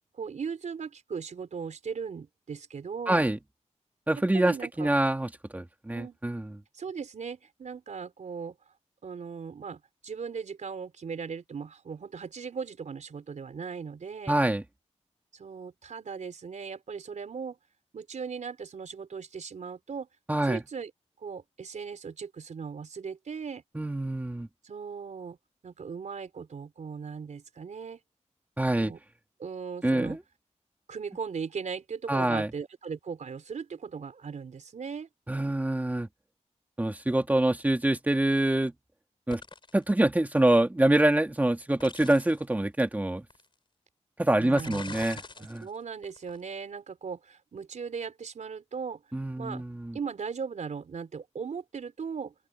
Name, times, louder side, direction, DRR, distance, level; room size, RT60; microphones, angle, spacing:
voice 1, 0.1-3.3 4.3-4.9 5.9-6.2 6.7-8.5 9.0-14.3 15.3-17.6 17.9-20.1 20.4-20.9 21.2-23.6 24.6-25.4 25.6-28.0 28.8-29.0 29.4-30.2 30.9-35.1 44.4-49.0 49.4-49.6 49.9-52.3, right 6 dB, 85° right, 4.3 m, -38 dB
voice 2, 3.1-3.4 4.1-6.5 14.3-14.6 20.3-20.6 23.7-24.5 28.6-28.9 29.8-30.2 32.1-32.5 35.3-36.1 36.8-38.7 39.3-39.4 39.7-43.3 44.2-45.7 49.1-50.0, right 1 dB, 15° right, 1.9 m, -25 dB
sound 1, 39.3-39.8 41.8-42.4 43.3-43.4 44.6-45.6 46.0-46.4, left 4 dB, 45° left, 3.7 m, -42 dB
wide cardioid pair, 145°, 12 cm